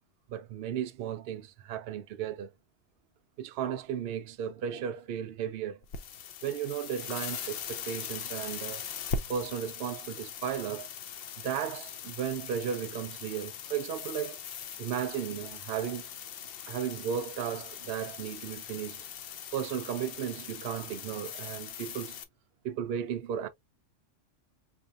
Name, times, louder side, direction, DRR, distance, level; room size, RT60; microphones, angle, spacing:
voice 1, 0.3-2.5 3.4-5.8 6.4-8.8 9.3-10.9 11.4-14.4 14.8-16.1 16.7-19.0 19.5-22.2 22.6-23.5, right 8 dB, 60° right, 0.7 m, -35 dB
sound 1, 5.8-22.2, left 7 dB, 55° left, 0.7 m, -41 dB
4.3 x 2.8 x 2.4 m
omnidirectional pair, 1.3 m